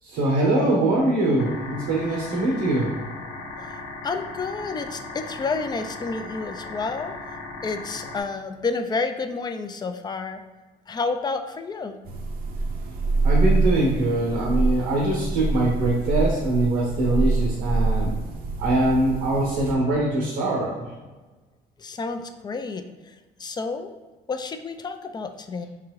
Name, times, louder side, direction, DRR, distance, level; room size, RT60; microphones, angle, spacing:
voice 1, 0.0-2.9 13.2-18.1 18.6-20.8, right 1 dB, 85° right, -4 dB, 1.1 m, -23 dB
sound 1, 1.4-8.2, left 3 dB, 85° left, 0.9 m, -37 dB
voice 2, 3.6-7.1 7.6-10.4 10.9-12.0 21.8-23.1 23.4-23.9 24.3-25.7, left 4 dB, 25° left, 7 dB, 0.4 m, -30 dB
sound 2, 12.0-19.7, right 3 dB, 60° right, 0.7 m, -25 dB
4.6 x 3.8 x 3.1 m, 1.2 s
cardioid pair, 110°, 17 cm